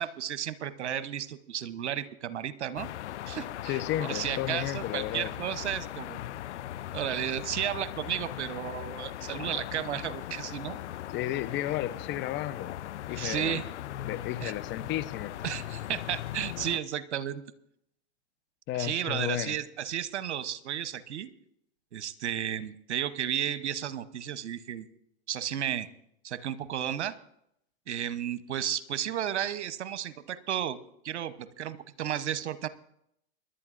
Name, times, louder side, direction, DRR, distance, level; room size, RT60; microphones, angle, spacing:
voice 1, 0.0-2.9 3.3-6.2 6.9-10.8 13.1-13.6 14.4-14.5 15.4-17.4 18.7-21.3 21.9-24.9 25.3-25.9 26.2-27.2 27.9-30.8 31.0-32.7, right 10 dB, 80° right, 14 dB, 0.9 m, -33 dB
sound 1, 2.8-16.8, left 13 dB, 80° left, 0.5 m, -39 dB
voice 2, 3.6-5.3 11.1-12.7 13.1-13.6 14.0-15.3 18.7-19.5, left 13 dB, 35° left, 13 dB, 0.7 m, -33 dB
23.0 x 11.5 x 2.5 m, 0.75 s
hypercardioid pair, 110°, 34 cm